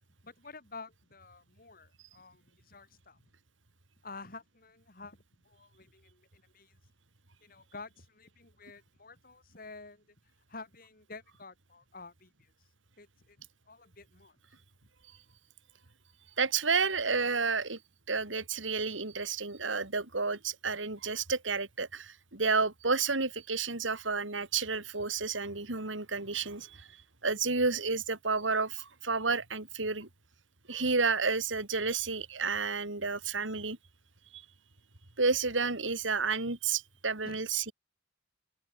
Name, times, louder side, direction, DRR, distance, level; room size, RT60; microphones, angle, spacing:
voice 1, 0.2-3.2 4.0-6.8 7.4-10.2 10.5-12.5 13.0-14.4 36.5-36.6 37.2-37.4, left 3 dB, 50° left, 5.8 m, -50 dB
voice 2, 16.4-17.8 18.1-26.9 27.2-30.1 30.7-33.8 34.3-34.4 35.2-37.7, right 4 dB, 85° right, 3.4 m, -31 dB
open air
head